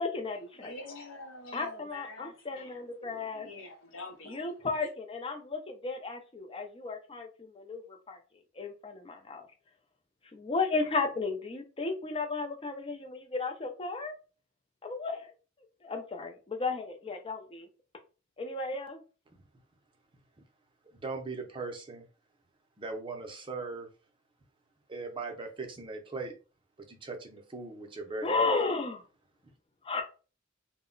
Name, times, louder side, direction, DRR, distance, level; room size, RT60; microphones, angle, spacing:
voice 1, 0.0-0.7 1.5-3.5 4.3-8.2 8.6-9.5 10.3-14.2 14.8-15.3 15.8-17.7 18.4-19.0 28.2-29.0 29.8-30.0, left 3 dB, 30° left, 0.5 m, -34 dB
voice 2, 0.5-4.7, left 2 dB, 85° left, 0.7 m, -46 dB
voice 3, 20.9-22.1 22.8-23.9 24.9-26.3 26.9-28.5, right 3 dB, 25° right, 0.5 m, -39 dB
2.1 x 2.1 x 3.7 m
head